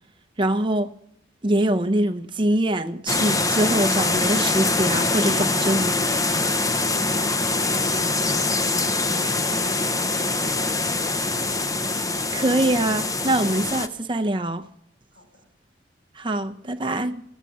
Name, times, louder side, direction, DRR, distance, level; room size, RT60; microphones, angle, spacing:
voice 1, 0.4-0.9 1.4-6.0 12.3-14.6 16.2-17.2, right 1 dB, 25° right, 0.6 m, -23 dB
sound 1, 3.1-13.9, left 3 dB, 20° left, 0.6 m, -23 dB
voice 2, 15.1-15.5, equal, 70° left, 4.0 m, -49 dB
17.5 x 8.2 x 7.4 m
head